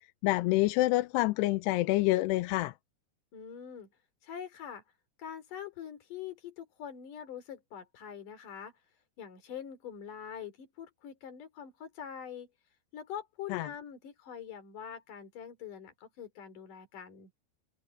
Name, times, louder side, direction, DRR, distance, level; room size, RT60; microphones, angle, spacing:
voice 1, 0.2-2.7 13.5-13.7, left 19 dB, 85° left, 2.8 m, -27 dB
voice 2, 3.3-3.9 4.2-4.8 5.2-8.7 9.2-12.5 12.9-17.3, left 8 dB, 50° left, 4.8 m, -44 dB
omnidirectional pair, 4.8 m